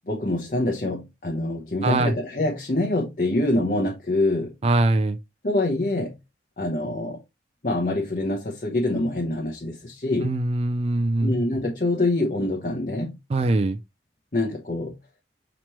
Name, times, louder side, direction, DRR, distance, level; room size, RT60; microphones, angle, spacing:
voice 1, 0.1-4.5 5.4-6.2 6.6-7.2 7.6-10.3 11.2-13.2 14.3-15.0, left 2 dB, 45° left, 0.8 m, -25 dB
voice 2, 1.8-2.1 4.6-5.2 10.2-11.3 13.3-13.8, right 2 dB, 35° right, 0.3 m, -22 dB
5.8 x 3.0 x 3.1 m
head